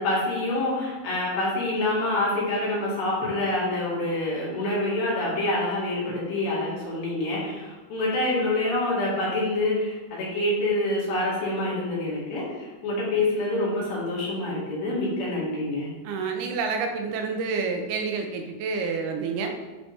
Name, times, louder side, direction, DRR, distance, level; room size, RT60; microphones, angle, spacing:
voice 1, 0.0-15.9, left 2 dB, 70° left, -6 dB, 3.9 m, -26 dB
voice 2, 16.0-19.5, right 4 dB, 85° right, 3 dB, 2.8 m, -28 dB
10.5 x 4.1 x 3.6 m, 1.2 s
omnidirectional pair, 4.3 m